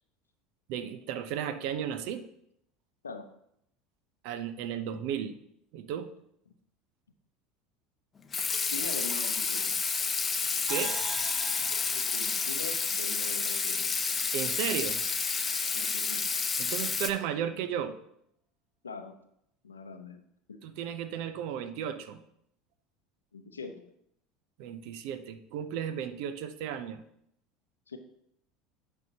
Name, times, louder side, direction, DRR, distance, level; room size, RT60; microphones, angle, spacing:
voice 1, 0.7-2.2 4.2-5.4 5.7-6.1 10.7-11.0 14.3-15.0 16.6-18.0 20.6-22.2 24.6-27.0, right 9 dB, 60° right, 10 dB, 0.6 m, -34 dB
Water tap faucet / Sink (filling or washing), 8.3-17.1, left 5 dB, 25° left, 0.7 m, -30 dB
voice 2, 8.7-9.8 11.7-14.0 15.7-16.2 18.8-19.1 19.6-20.2 20.5-20.7 23.3-23.8 27.9-28.0, left 4 dB, 85° left, 7 dB, 0.7 m, -42 dB
sound 1, 10.7-14.0, right 3 dB, 25° right, 0.9 m, -43 dB
8.9 x 5.6 x 2.9 m, 0.73 s
hypercardioid pair, 75°, 0 cm